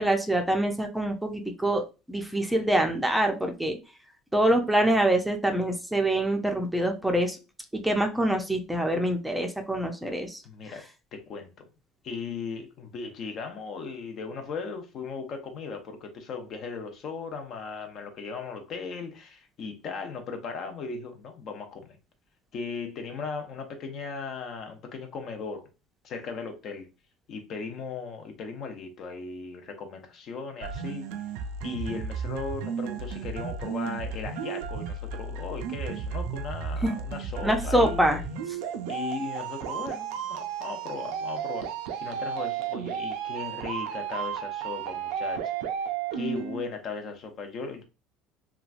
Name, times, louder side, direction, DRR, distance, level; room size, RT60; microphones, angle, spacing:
voice 1, 0.0-1.8 2.1-3.8 4.3-7.4 7.7-10.4 36.8-36.9 37.4-38.2, right 1 dB, 5° right, 0.5 m, -25 dB
voice 2, 10.4-10.8 11.1-11.7 12.0-22.0 22.5-25.6 26.0-26.9 27.3-31.1 31.6-38.1 38.9-41.7 42.0-45.4 46.1-47.8, left 5 dB, 55° left, 0.7 m, -37 dB
sound 1, 30.6-46.6, right 7 dB, 80° right, 0.4 m, -33 dB
3.0 x 2.3 x 2.4 m
supercardioid pair, 95°, 0 cm